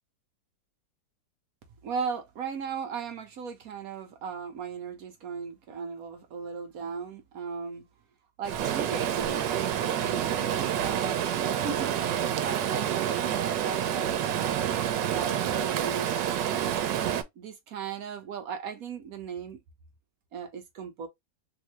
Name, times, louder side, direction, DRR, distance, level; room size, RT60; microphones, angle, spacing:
voice 1, 1.8-7.8 8.4-11.9 12.4-14.8 15.1-16.4 17.4-19.6 20.3-21.1, right 6 dB, 60° right, 1.0 m, -37 dB
Stream, 8.4-17.2, right 9 dB, 85° right, 1.3 m, -28 dB
3.6 x 2.6 x 2.9 m
omnidirectional pair, 1.9 m